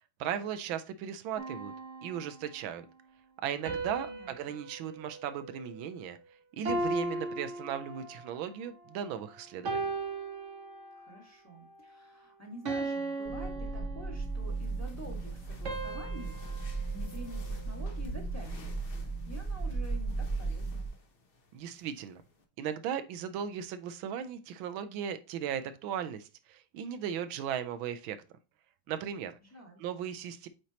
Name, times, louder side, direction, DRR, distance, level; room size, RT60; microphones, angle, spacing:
voice 1, 0.2-1.7 2.0-2.8 3.4-6.2 6.5-9.9 21.5-22.2 22.6-28.2 28.9-29.4 29.8-30.5, right 9 dB, 80° right, 10 dB, 1.4 m, -37 dB
sound 1, 1.4-2.7 3.7-6.2 6.7-8.4 8.9-9.2 9.7-11.2 11.7-12.0 12.7-14.6 15.7-18.0, right 2 dB, 45° right, 1.2 m, -38 dB
voice 2, 4.0-4.5 10.9-16.6 16.9-20.9 29.4-29.8, equal, 10° left, 1 dB, 1.3 m, -48 dB
sound 2, 13.3-20.9, right 3 dB, 60° left, 2.3 m, -36 dB
sound 3, 14.3-22.4, right 1 dB, 40° left, 0.8 m, -53 dB
8.1 x 4.5 x 2.9 m, 0.31 s
omnidirectional pair, 2.2 m